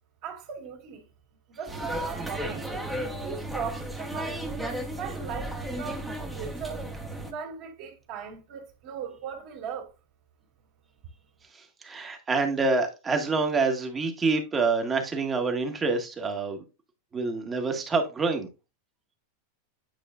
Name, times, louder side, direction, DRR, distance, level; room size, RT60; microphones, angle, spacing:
voice 1, 0.2-1.1 1.5-2.7 3.2-6.8 7.2-9.9, right 6 dB, 55° right, 2.6 m, -38 dB
sound 1, 1.7-7.3, right 1 dB, 5° right, 1.5 m, -34 dB
voice 2, 11.5-16.6 17.1-18.5, right 4 dB, 20° right, 1.8 m, -27 dB
9.3 x 4.8 x 2.6 m
hypercardioid pair, 95°, 0 cm